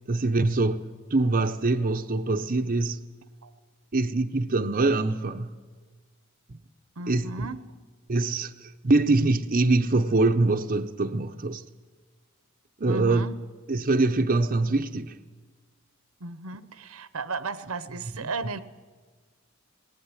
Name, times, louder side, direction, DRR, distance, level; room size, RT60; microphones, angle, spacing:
voice 1, 0.1-3.0 3.9-5.6 6.5-6.6 7.1-7.5 8.1-11.6 12.8-13.3 13.7-15.2, right 2 dB, 40° right, 0.8 m, -24 dB
voice 2, 7.0-7.6 12.9-13.4 16.2-18.6, right 3 dB, 80° right, 1.0 m, -35 dB
19.0 x 18.5 x 9.8 m
head